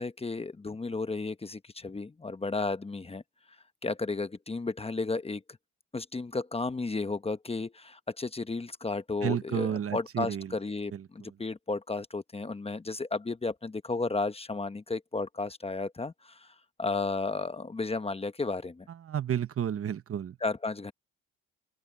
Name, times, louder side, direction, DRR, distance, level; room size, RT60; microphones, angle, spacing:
voice 1, 0.0-3.2 3.8-5.4 5.9-18.9 20.4-20.9, left 3 dB, 20° left, 1.0 m, -33 dB
voice 2, 9.2-10.5 10.9-11.3 18.9-20.4, right 9 dB, 50° right, 1.2 m, -32 dB
cardioid pair, 90°, 30 cm